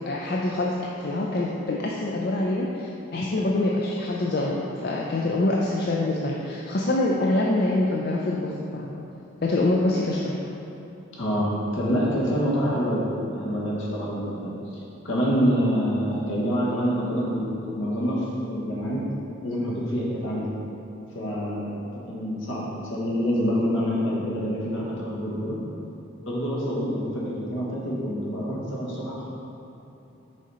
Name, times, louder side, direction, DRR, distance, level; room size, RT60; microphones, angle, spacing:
voice 1, 0.0-9.0 9.4-10.4, left 2 dB, 50° left, -3 dB, 0.5 m, -25 dB
voice 2, 11.1-13.1 13.3-19.0 19.4-20.5 21.1-21.8 22.1-25.6 26.3-29.3, equal, 70° left, -5 dB, 1.5 m, -26 dB
6.4 x 5.2 x 4.2 m, 2.9 s
head